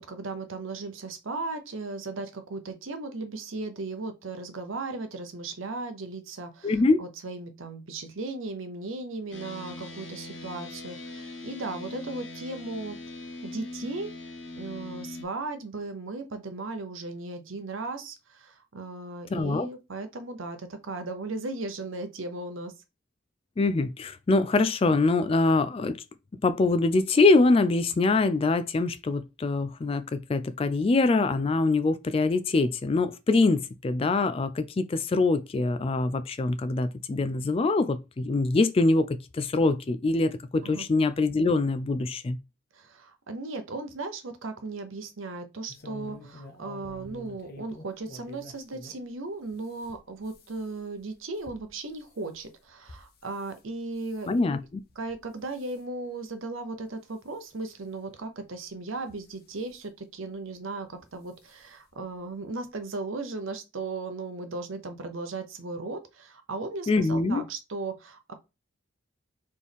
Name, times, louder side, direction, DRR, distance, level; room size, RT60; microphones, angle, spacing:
voice 1, 0.0-14.1 14.6-22.7 40.6-40.8 42.7-54.3 55.0-68.3, right 3 dB, 80° right, 0.8 m, -36 dB
voice 2, 6.6-7.0 19.3-19.7 23.6-26.0 26.4-42.4 54.3-54.8 66.9-67.4, left 3 dB, 30° left, 0.3 m, -24 dB
sound 1, 9.3-15.2, left 2 dB, 70° left, 1.1 m, -41 dB
sound 2, 45.7-49.0 49.5-53.6 54.0-54.4 54.9-55.2 55.5-55.8 56.4-56.5 56.9-57.0 58.1-58.2 59.0-59.8 60.9-61.1 61.5-61.6 61.9-62.0, left 1 dB, 50° left, 0.7 m, -48 dB
4.3 x 3.1 x 3.5 m
head